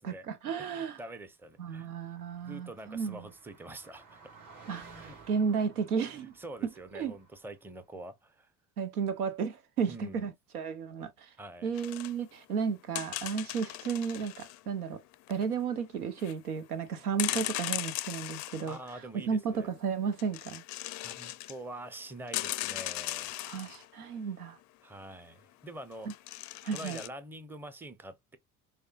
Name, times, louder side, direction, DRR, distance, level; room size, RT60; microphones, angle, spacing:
voice 1, 0.0-1.0 1.6-3.3 4.7-6.3 6.9-7.1 8.8-11.3 11.6-15.0 15.3-18.8 19.1-20.6 23.4-24.6 26.6-27.0, right 6 dB, 80° right, 0.8 m, -33 dB
voice 2, 0.6-1.9 2.4-4.2 5.0-5.2 6.4-8.5 9.9-10.3 11.4-11.7 18.6-19.7 20.9-23.4 24.8-26.1 26.7-28.4, right 1 dB, 5° right, 0.6 m, -45 dB
Car passing by, 1.7-7.6, right 4 dB, 45° right, 2.7 m, -55 dB
sound 1, 11.7-12.1 12.9-14.6 15.1-15.5 16.2-16.3 17.2-18.9 20.2-21.6 21.9-22.0 22.3-23.9 25.9-27.1, left 17 dB, 40° left, 0.4 m, -37 dB
4.9 x 2.2 x 2.4 m
hypercardioid pair, 65°, 44 cm